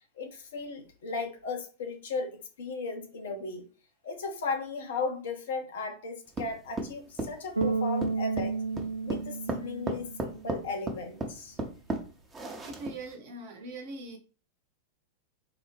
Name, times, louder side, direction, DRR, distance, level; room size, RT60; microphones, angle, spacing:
voice 1, 0.2-3.7 4.0-8.5 9.0-11.6, left 4 dB, 60° left, 4 dB, 0.7 m, -36 dB
sound 1, 6.4-13.1, right 2 dB, 15° right, 0.7 m, -35 dB
Bass guitar, 7.6-10.7, right 4 dB, 90° left, 0.3 m, -32 dB
voice 2, 12.6-14.2, right 2 dB, 50° right, 4 dB, 0.8 m, -41 dB
3.9 x 2.1 x 3.3 m, 0.36 s
figure-of-eight pair, 90°, 0 cm